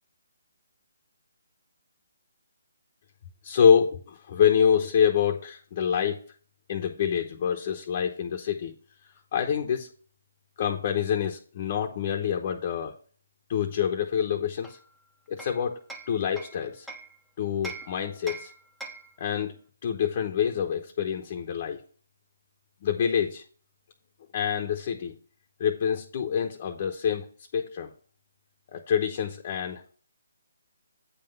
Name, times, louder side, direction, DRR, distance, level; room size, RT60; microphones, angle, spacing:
voice 1, 3.4-6.2 6.7-8.7 9.3-9.9 10.6-12.9 13.5-14.8 15.3-15.8 16.1-16.9 17.4-18.5 19.2-19.5 19.8-21.8 22.8-23.4 24.3-25.1 25.6-27.2 27.5-27.9 28.7-29.9, left 8 dB, 40° left, 3 dB, 0.8 m, -26 dB
Hammer, 14.6-17.2 17.6-19.2, right 3 dB, ahead, 0.7 m, -43 dB
8.5 x 3.9 x 5.3 m, 0.43 s
hypercardioid pair, 160°, 0 cm